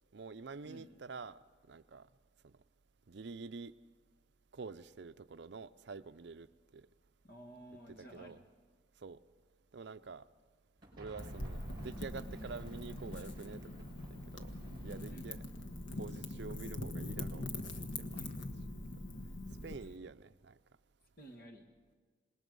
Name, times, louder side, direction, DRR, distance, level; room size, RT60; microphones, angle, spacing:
voice 1, 0.1-1.4 1.7-2.1 2.4-2.5 3.1-3.7 4.5-6.5 6.7-6.9 8.0-8.4 9.0-9.2 9.7-10.2 11.0-14.5 14.8-15.4 16.0-18.5 19.6-20.6, right 4 dB, 65° right, 12 dB, 0.5 m, -48 dB
voice 2, 7.2-8.4 15.1-15.3 18.2-18.4 21.2-21.7, right 1 dB, 50° left, 4 dB, 1.9 m, -53 dB
sound 1, 10.8-15.8, equal, 20° right, 5.7 m, -53 dB
Wind / Fire, 11.2-19.8, left 2 dB, 80° left, 1.4 m, -43 dB
26.5 x 20.5 x 5.4 m, 1.5 s
head